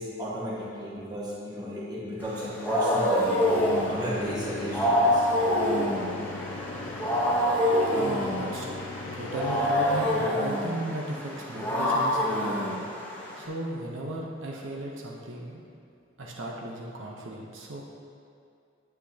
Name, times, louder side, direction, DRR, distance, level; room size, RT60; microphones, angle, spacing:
voice 1, 0.0-3.4 3.8-5.3, equal, 20° right, -6 dB, 1.5 m, -34 dB
Wild animals, 2.2-13.5, equal, 10° left, 0.9 m, -26 dB
sound 1, 3.2-10.3, left 3 dB, 75° left, 0.4 m, -40 dB
voice 2, 8.0-8.7 9.1-12.8 13.3-15.6 16.2-17.8, right 1 dB, 75° right, -2 dB, 0.9 m, -36 dB
8.8 x 8.1 x 2.8 m, 2.4 s
head